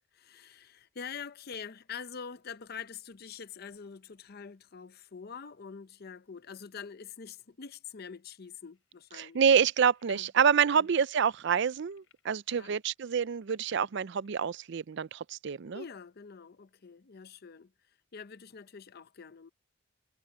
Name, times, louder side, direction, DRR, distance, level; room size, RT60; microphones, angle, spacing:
voice 1, 0.1-9.4 10.1-10.3 10.7-10.9 12.5-12.8 15.7-17.7 18.1-19.5, left 6 dB, 50° left, 0.6 m, -45 dB
sound 1, 8.7-14.3, left 7 dB, 85° left, 4.4 m, -64 dB
voice 2, 9.2-15.8, right 7 dB, 60° right, 0.4 m, -27 dB
head